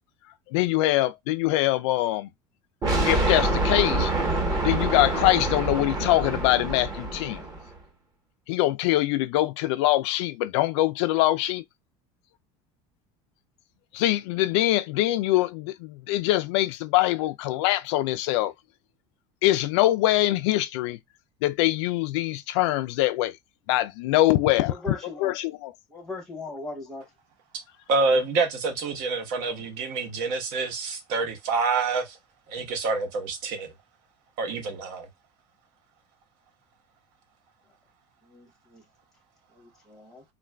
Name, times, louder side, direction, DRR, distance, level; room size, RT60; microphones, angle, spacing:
voice 1, 0.5-2.3 3.1-4.1 4.6-7.4 8.5-11.6 13.9-18.5 19.4-21.0 21.4-23.4 23.7-24.7 25.2-25.7, left 16 dB, 90° left, 0.4 m, -23 dB
sound 1, 2.8-7.7, right 2 dB, 25° right, 1.0 m, -26 dB
voice 2, 24.7-25.3 25.9-27.0 38.3-38.8 39.5-40.2, left 3 dB, 5° left, 0.8 m, -39 dB
voice 3, 27.9-32.2 32.5-33.7 34.4-35.1, right 4 dB, 70° right, 1.0 m, -27 dB
3.7 x 2.4 x 2.2 m
cardioid pair, 160°, 14 cm